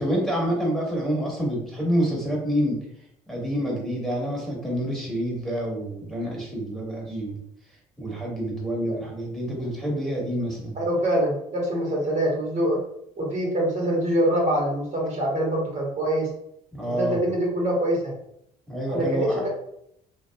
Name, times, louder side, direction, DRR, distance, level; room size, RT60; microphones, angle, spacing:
voice 1, 0.0-2.8 3.3-7.4 8.0-10.8 16.7-17.2 18.7-19.4, equal, 5° left, -3 dB, 1.2 m, -27 dB
voice 2, 10.7-12.8 13.2-16.3 17.0-18.1 18.9-19.5, right 1 dB, 45° right, -2 dB, 1.1 m, -24 dB
3.0 x 2.4 x 2.2 m, 0.73 s
hypercardioid pair, 60°, 18 cm